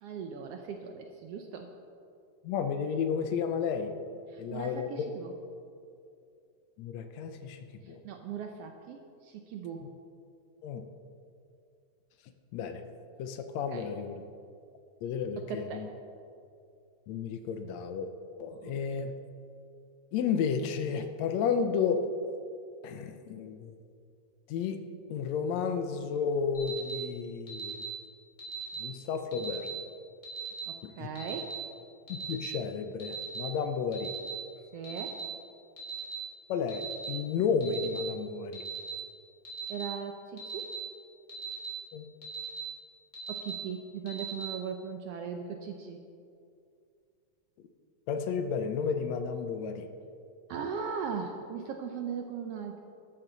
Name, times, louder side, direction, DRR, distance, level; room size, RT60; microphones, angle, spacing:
voice 1, 0.0-1.7 4.3-5.3 7.8-9.8 13.7-13.8 15.4-15.8 18.5-18.7 30.7-31.5 34.7-35.2 39.7-40.7 43.3-46.0 50.5-52.8, right 6 dB, 75° right, 4 dB, 1.5 m, -39 dB
voice 2, 2.4-3.9 4.4-5.1 6.8-8.0 10.6-10.9 12.5-12.8 13.2-14.2 15.0-15.9 17.1-18.1 18.4-19.1 20.1-22.1 22.8-23.8 24.5-24.8 25.1-27.8 28.8-29.7 30.8-31.1 32.1-34.1 36.5-38.7 41.9-42.1 48.1-49.9, left 6 dB, 75° left, 7 dB, 1.9 m, -32 dB
Alarm, 26.5-26.9 27.5-27.8 28.4-28.7 29.3-29.7 30.2-30.6 31.1-31.5 32.1-32.4 33.0-33.4 33.9-34.3 34.8-35.2 35.8-36.1 36.7-37.0 37.6-38.0 38.5-38.9 39.4-39.8 40.4-40.7 41.3-41.6 42.2-42.6 43.1-43.5 44.1-44.4, right 3 dB, 25° left, 3.9 m, -42 dB
12.5 x 12.5 x 4.0 m, 2.4 s
omnidirectional pair, 3.3 m